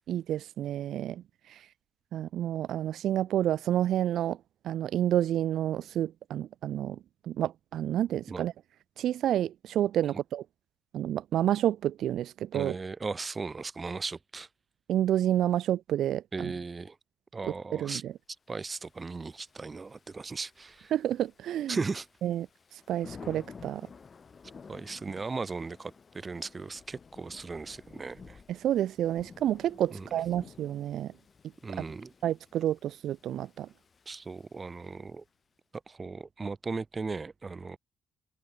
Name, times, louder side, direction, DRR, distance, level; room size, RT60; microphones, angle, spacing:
voice 1, 0.1-1.7 2.1-4.4 4.6-7.0 7.3-8.5 9.0-10.4 10.9-12.8 14.9-16.5 17.7-18.1 20.9-21.8 22.2-22.5 22.7-23.8 28.5-31.1 32.2-33.7, right 11 dB, 75° right, 0.3 m, -29 dB
voice 2, 12.5-14.5 16.3-17.0 17.3-18.0 18.5-20.9 21.7-22.1 24.7-28.4 29.9-30.1 31.6-32.1 34.1-35.2 35.9-37.8, right 4 dB, 30° right, 1.4 m, -37 dB
Thunder / Rain, 18.7-35.3, left 5 dB, 40° left, 2.3 m, -53 dB
cardioid pair, 90°, 0 cm